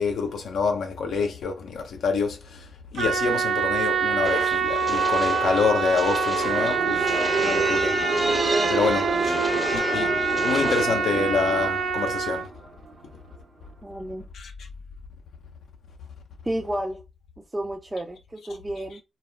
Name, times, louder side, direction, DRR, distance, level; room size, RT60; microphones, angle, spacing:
voice 1, 0.0-9.4 9.7-10.1 10.4-12.5 14.3-14.5, left 5 dB, 80° left, 0.4 m, -27 dB
Trumpet, 2.9-12.4, right 5 dB, 90° right, 0.8 m, -25 dB
sound 1, 4.2-10.8, left 1 dB, 25° left, 0.6 m, -34 dB
sound 2, 6.4-13.0 13.3-13.4, right 4 dB, 60° right, 0.9 m, -29 dB
voice 2, 9.0-9.3 13.8-14.3 16.4-17.0 17.5-19.0, right 1 dB, 25° right, 0.4 m, -31 dB
2.2 x 2.0 x 3.2 m
supercardioid pair, 50°, 0 cm